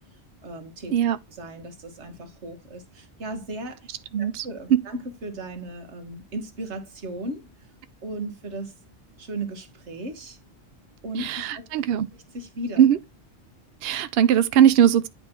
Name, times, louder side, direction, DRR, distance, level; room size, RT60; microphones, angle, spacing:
voice 1, 0.4-0.9 1.3-3.9 4.2-7.5 8.0-8.7 9.2-10.4 11.0-11.7 12.3-12.8, right 1 dB, 85° right, 1.6 m, -36 dB
voice 2, 4.1-4.5 11.2-12.1 12.8-13.0 13.8-15.1, right 9 dB, 65° right, 0.7 m, -19 dB
9.2 x 3.4 x 4.4 m
omnidirectional pair, 1.1 m